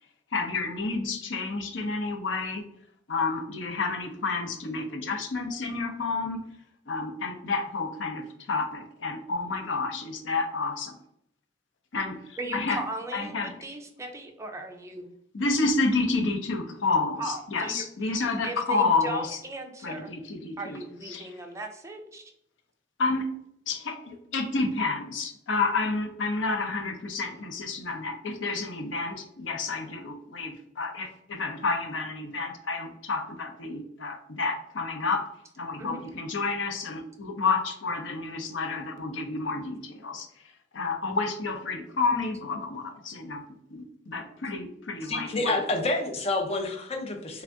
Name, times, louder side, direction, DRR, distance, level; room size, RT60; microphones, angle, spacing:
voice 1, 0.3-2.6 3.1-6.4 6.9-11.0 11.9-12.8 13.1-13.5 15.3-19.4 19.8-20.8 21.1-21.3 23.0-23.3 23.7-35.2 35.6-40.3 40.7-43.4 43.7-45.6, left 3 dB, 85° left, 5 dB, 0.6 m, -30 dB
voice 2, 12.4-15.1 17.2-17.9 18.4-20.1 20.6-22.3 35.8-36.0, right 2 dB, 15° right, 4 dB, 0.5 m, -37 dB
voice 3, 45.1-47.4, left 2 dB, 35° left, 4 dB, 0.6 m, -28 dB
3.4 x 2.6 x 3.4 m, 0.70 s
head